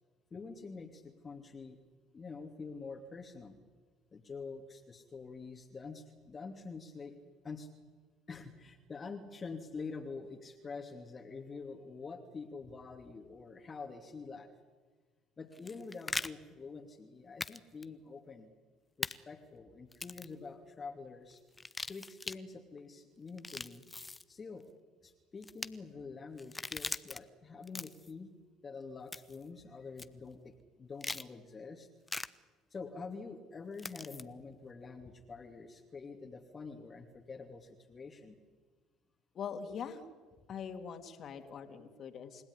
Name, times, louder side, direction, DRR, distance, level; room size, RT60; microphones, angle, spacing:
voice 1, 0.3-1.8 2.1-3.6 4.1-7.2 7.4-7.7 8.3-14.5 15.4-18.5 19.0-21.4 21.9-23.8 24.3-24.7 25.0-28.3 28.6-31.9 32.7-38.4, left 4 dB, 30° left, 3 dB, 2.6 m, -46 dB
sound 1, 15.5-16.3 17.4-17.6 17.8-17.9 19.0-19.1 19.9-20.3 21.5-22.4 23.3-24.2 25.4-25.7 26.4-27.2 27.6-28.1 29.1-29.4 30.0-30.1 31.0-31.3 32.1-32.3 33.8-34.2, left 2 dB, 15° left, 1.1 m, -40 dB
voice 2, 39.3-40.1 40.5-42.4, left 7 dB, 50° left, 7 dB, 3.0 m, -43 dB
29.0 x 17.0 x 9.9 m, 1.4 s
supercardioid pair, 75°, 0 cm